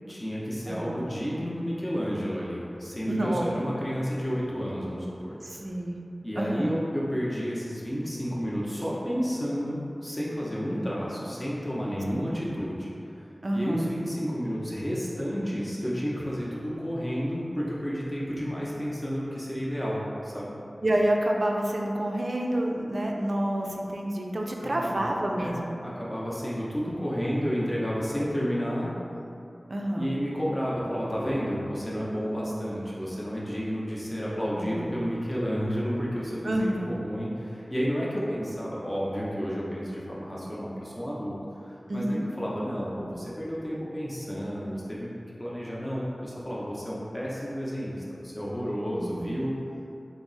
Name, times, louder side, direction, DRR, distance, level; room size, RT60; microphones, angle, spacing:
voice 1, 0.1-5.7 6.2-13.2 13.5-20.6 24.6-28.9 30.0-41.4 41.6-42.0 42.4-45.1 45.4-49.5, equal, 20° left, -7 dB, 0.6 m, -31 dB
voice 2, 0.7-1.0 3.1-3.6 5.4-6.0 6.4-6.7 12.2-12.3 13.4-13.8 20.8-25.8 29.7-30.1 34.5-35.0 36.4-36.9 41.9-42.3 48.9-49.4, right 1 dB, 55° right, 0 dB, 0.4 m, -28 dB
3.5 x 2.0 x 3.8 m, 2.7 s
wide cardioid pair, 50°, 0 cm